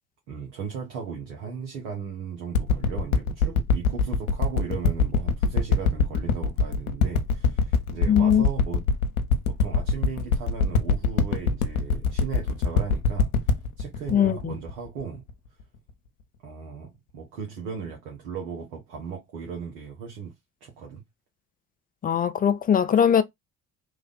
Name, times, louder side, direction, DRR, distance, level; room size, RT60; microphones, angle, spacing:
voice 1, 0.3-8.8 9.5-13.3 13.8-15.2 16.4-20.3 20.6-21.0, right 6 dB, 75° right, 1.2 m, -36 dB
sound 1, 2.5-15.3 15.9-16.0, left 4 dB, 75° left, 0.7 m, -23 dB
voice 2, 8.1-8.4 14.1-14.5 22.0-23.2, left 8 dB, 20° left, 0.4 m, -20 dB
3.3 x 2.4 x 3.8 m
figure-of-eight pair, 55°, 43 cm